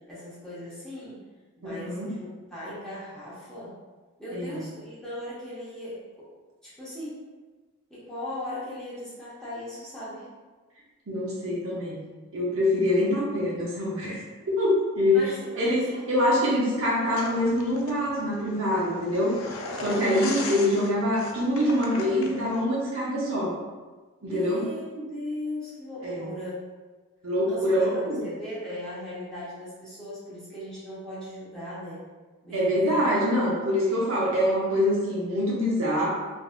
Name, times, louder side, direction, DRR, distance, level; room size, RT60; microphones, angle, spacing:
voice 1, 0.1-1.2 1.6-3.7 4.2-6.3 6.6-7.2 7.9-10.3 15.1-16.1 16.4-16.6 24.2-26.6 27.5-32.0 32.4-33.0, left 1 dB, 5° left, -11 dB, 0.8 m, -38 dB
voice 2, 1.6-2.1 4.3-4.6 11.1-12.0 12.3-15.3 15.6-15.8 16.1-19.4 19.8-23.5 24.2-24.7 26.0-26.3 27.2-28.2 32.5-36.1, left 1 dB, 65° right, -5 dB, 0.8 m, -25 dB
sound 1, 17.1-22.6, left 3 dB, 70° left, 0.4 m, -38 dB
3.2 x 2.6 x 2.4 m, 1.3 s
head